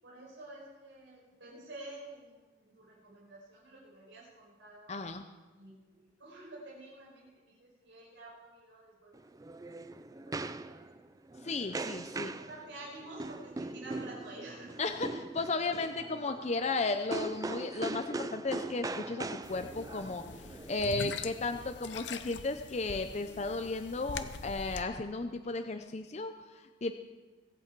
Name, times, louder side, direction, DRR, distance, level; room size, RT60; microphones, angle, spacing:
voice 1, 0.0-5.0 5.6-9.5 10.0-10.9 12.4-14.7, right 2 dB, 80° right, -5 dB, 5.8 m, -50 dB
voice 2, 4.9-5.2 11.4-12.3 14.8-20.2 20.7-26.9, left 3 dB, 35° left, 7 dB, 0.6 m, -34 dB
sound 1, 9.1-21.6, right 2 dB, 20° right, 0.4 m, -41 dB
sound 2, 19.4-24.8, left 5 dB, 70° left, 0.7 m, -43 dB
24.5 x 8.4 x 4.6 m, 1.3 s
head